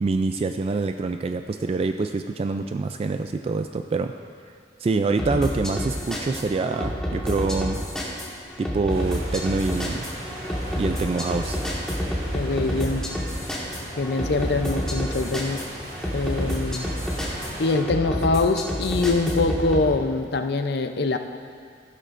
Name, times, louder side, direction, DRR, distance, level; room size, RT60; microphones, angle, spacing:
voice 1, 0.0-4.1 4.8-7.8 8.6-10.1 10.8-11.6, right 3 dB, 35° right, 7 dB, 0.3 m, -26 dB
sound 1, 5.2-19.9, equal, 5° left, 1.7 m, -29 dB
sound 2, 8.9-17.8, right 1 dB, 60° right, 2.4 m, -39 dB
voice 2, 12.3-13.2 14.0-15.7 16.1-16.9 17.6-21.2, left 3 dB, 65° left, 7 dB, 0.6 m, -24 dB
15.0 x 11.5 x 2.6 m, 2.1 s
head